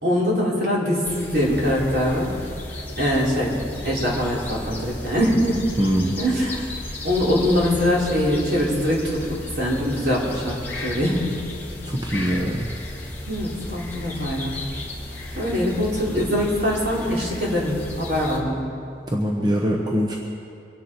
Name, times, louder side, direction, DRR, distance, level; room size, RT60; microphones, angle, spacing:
voice 1, 0.0-2.3 3.0-5.6 6.2-6.6 7.0-9.2 9.5-11.3 13.3-14.6 15.4-18.7, equal, 65° right, -5 dB, 3.7 m, -23 dB
sound 1, 1.0-18.4, left 1 dB, 10° left, 2.0 m, -34 dB
voice 2, 5.8-6.1 11.8-12.7 19.1-20.2, equal, 25° right, -2 dB, 1.1 m, -22 dB
24.0 x 10.0 x 4.5 m, 2.5 s
head